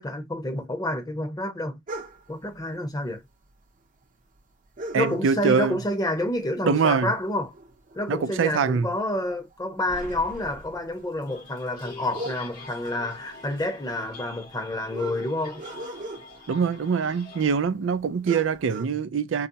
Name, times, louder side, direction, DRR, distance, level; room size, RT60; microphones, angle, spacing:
voice 1, 0.0-1.8 2.3-3.2 4.9-7.5 7.9-15.6, left 1 dB, 20° left, 0.9 m, -29 dB
sound 1, 1.9-2.4 3.4-3.5 3.8-3.9 4.8-5.7 6.1-6.3 6.7-8.3 8.6-8.8 9.3-17.7 18.0-18.1 18.2-18.9, right 1 dB, 45° right, 0.7 m, -40 dB
voice 2, 4.9-5.8 6.6-7.1 8.1-8.9 16.5-19.5, right 6 dB, 85° right, 0.4 m, -24 dB
sound 2, 11.3-17.6, left 4 dB, 55° left, 1.4 m, -45 dB
4.0 x 2.3 x 2.7 m
head